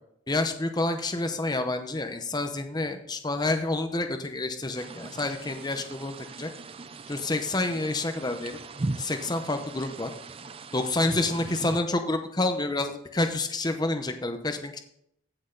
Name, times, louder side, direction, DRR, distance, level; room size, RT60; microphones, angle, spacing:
voice 1, 0.3-6.5 7.1-8.6 9.0-10.1 10.7-14.8, left 2 dB, 20° left, 6 dB, 0.8 m, -28 dB
sound 1, 4.8-11.8, right 3 dB, 30° right, 0.4 m, -39 dB
15.5 x 6.3 x 3.9 m, 0.73 s
head